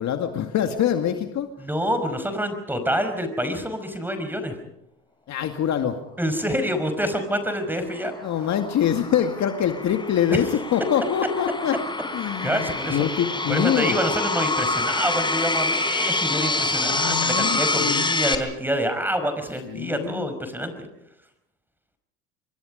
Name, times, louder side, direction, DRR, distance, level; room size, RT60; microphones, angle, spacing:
voice 1, 0.0-1.5 5.3-6.0 8.2-11.8 12.1-14.0 16.8-18.1 19.6-20.3, left 9 dB, 45° left, 6 dB, 2.3 m, -25 dB
voice 2, 1.6-4.6 6.2-8.1 10.3-10.4 12.2-13.0 13.5-20.9, equal, 5° right, 9 dB, 5.3 m, -27 dB
sound 1, 7.5-18.4, left 2 dB, 10° left, 3.7 m, -27 dB
27.5 x 23.0 x 5.3 m, 0.78 s
hypercardioid pair, 85°, 40 cm